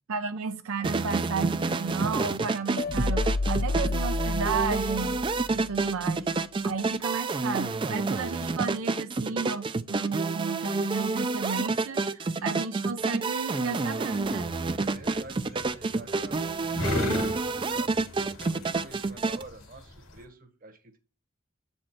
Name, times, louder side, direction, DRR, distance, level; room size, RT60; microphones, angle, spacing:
voice 1, 0.1-5.2 5.5-6.3 6.6-14.5, right 5 dB, 85° right, 0.5 m, -33 dB
sound 1, 0.8-19.4, right 3 dB, 25° right, 0.3 m, -29 dB
sound 2, 2.8-5.9, left 2 dB, 45° left, 0.5 m, -30 dB
sound 3, 14.2-20.2, left 2 dB, 75° left, 2.1 m, -36 dB
voice 2, 14.9-21.0, right 2 dB, 45° right, 1.1 m, -48 dB
7.6 x 4.3 x 4.4 m
head